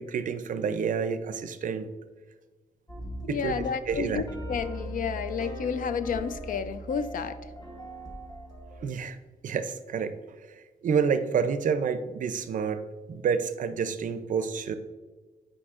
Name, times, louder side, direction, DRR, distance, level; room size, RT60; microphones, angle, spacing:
voice 1, 0.0-1.9 3.3-4.2 8.8-9.2 9.4-10.1 10.5-12.8 13.1-14.7, right 6 dB, 60° right, 10 dB, 0.5 m, -29 dB
sound 1, 2.9-8.8, right 1 dB, 25° left, 1.0 m, -39 dB
voice 2, 3.2-7.4, left 6 dB, 65° left, 12 dB, 0.4 m, -31 dB
8.6 x 4.9 x 2.4 m, 1.3 s
wide cardioid pair, 135°, 15 cm